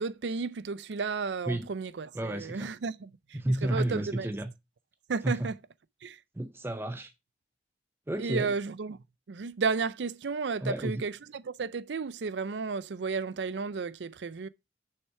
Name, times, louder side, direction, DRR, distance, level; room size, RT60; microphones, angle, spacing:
voice 1, 0.0-3.1 3.7-4.3 5.1-5.6 6.0-6.2 8.2-9.0 9.3-14.5, right 4 dB, 85° right, 0.5 m, -33 dB
voice 2, 2.1-2.7 3.3-4.5 5.2-5.5 6.3-7.1 8.1-8.5 10.6-11.0, right 1 dB, 15° right, 0.5 m, -31 dB
6.6 x 5.7 x 4.6 m
head